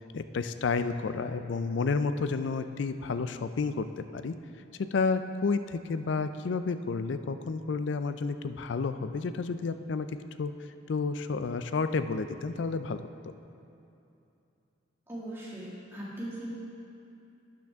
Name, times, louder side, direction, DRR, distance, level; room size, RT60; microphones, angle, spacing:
voice 1, 0.1-4.3 4.9-10.1 10.4-10.5 10.9-13.1, left 4 dB, 65° left, 10 dB, 0.4 m, -31 dB
voice 2, 15.1-16.5, right 1 dB, 10° right, -7 dB, 2.0 m, -39 dB
11.5 x 8.9 x 3.5 m, 2.7 s
head